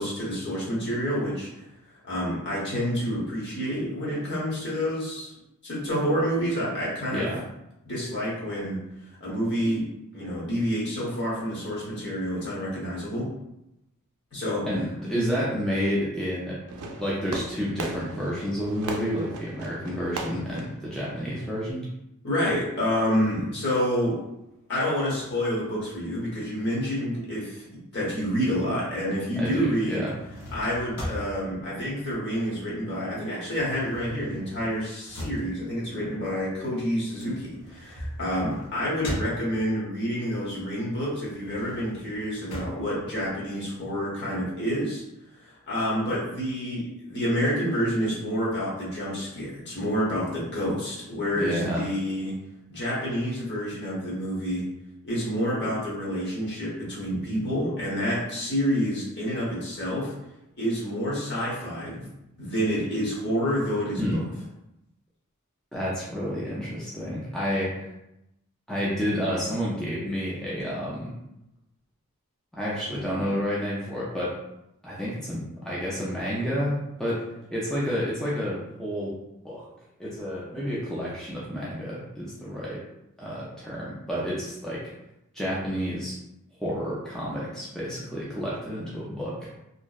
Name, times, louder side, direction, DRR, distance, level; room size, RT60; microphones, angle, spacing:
voice 1, 0.0-1.7 2.0-5.3 5.6-7.2 7.8-8.8 9.2-9.9 10.1-13.3 14.3-14.7 22.2-24.2 24.7-30.0 30.5-45.0 45.4-52.3 52.7-54.6 55.0-60.1 60.6-62.1 62.4-64.2, equal, 50° left, -6 dB, 0.9 m, -28 dB
voice 2, 14.7-16.6 17.0-21.8 29.4-30.2 51.4-51.8 64.0-64.2 65.7-67.9 68.7-71.1 72.5-74.4 74.8-79.2 79.4-79.7 80.0-82.8 83.2-84.9 85.3-86.2 86.6-89.5, equal, ahead, -8 dB, 0.3 m, -30 dB
Fireworks, 16.7-21.7, right 3 dB, 75° right, 0.3 m, -38 dB
sound 1, 30.0-32.8 33.1-39.9 40.3-43.9, equal, 75° left, 0.7 m, -40 dB
2.6 x 2.1 x 2.3 m, 0.86 s
head